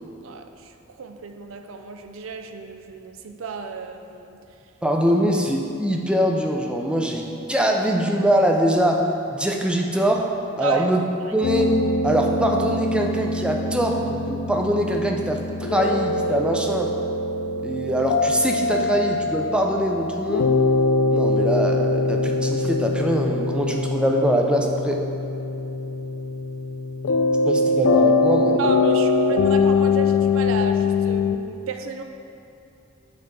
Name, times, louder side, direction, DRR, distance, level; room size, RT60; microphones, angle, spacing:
voice 1, 0.2-4.4 10.6-10.9 11.2-11.3 28.6-32.0, right 5 dB, 75° right, 6 dB, 0.5 m, -32 dB
voice 2, 4.8-10.3 10.6-11.0 11.3-11.7 12.0-16.9 17.6-20.5 21.1-25.0 27.5-28.6, equal, 5° right, 1 dB, 0.4 m, -23 dB
sound 1, 11.4-31.4, left 3 dB, 75° left, 0.4 m, -23 dB
8.0 x 3.5 x 3.9 m, 2.8 s
head